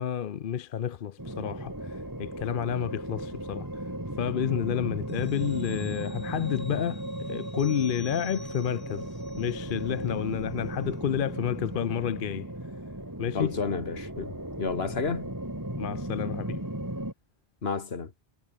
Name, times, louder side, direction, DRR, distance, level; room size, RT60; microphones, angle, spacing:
voice 1, 0.0-3.8 4.2-9.1 9.4-12.5 13.2-13.6 15.8-16.7, left 9 dB, 60° left, 0.8 m, -30 dB
sound 1, 1.2-17.1, right 1 dB, 20° right, 3.3 m, -36 dB
sound 2, 5.1-10.2 10.5-10.7, left 1 dB, 20° left, 3.2 m, -51 dB
voice 2, 13.3-15.3 17.6-18.1, left 5 dB, 75° left, 2.0 m, -31 dB
omnidirectional pair, 1.0 m